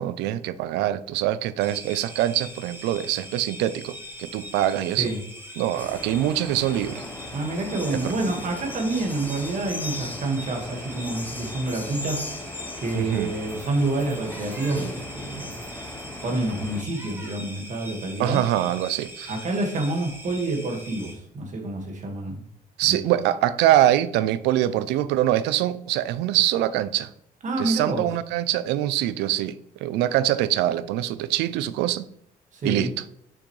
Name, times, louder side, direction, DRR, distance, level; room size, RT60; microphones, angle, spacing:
voice 1, 0.0-5.1 5.6-7.0 7.9-8.1 12.9-13.3 18.2-19.3 22.8-27.1 27.6-32.1 32.6-33.0, right 13 dB, 90° right, 0.4 m, -24 dB
sound 1, 1.6-21.1, equal, 15° right, 1.6 m, -42 dB
sound 2, 5.7-16.8, left 2 dB, 10° left, 0.9 m, -37 dB
voice 2, 7.3-12.4 12.8-15.5 16.2-18.4 19.3-22.4 22.8-23.0 27.4-28.1 32.5-32.9, right 2 dB, 45° right, 1.8 m, -28 dB
6.4 x 6.2 x 3.2 m
cardioid pair, 110°, 17 cm